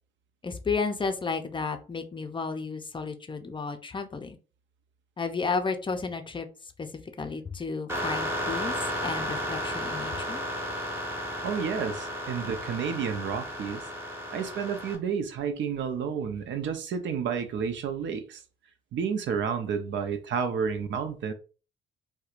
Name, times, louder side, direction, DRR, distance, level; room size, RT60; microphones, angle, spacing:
voice 1, 0.4-4.4 5.2-6.5 6.8-6.9 7.2-8.7 9.0-10.4, left 4 dB, 25° left, 0.5 m, -32 dB
sound 1, 7.9-15.0, equal, 10° right, 1.2 m, -33 dB
voice 2, 11.4-13.8 14.3-18.4 18.9-21.3, right 6 dB, 70° right, 0.6 m, -30 dB
4.3 x 2.2 x 2.5 m
cardioid pair, 90°, 20 cm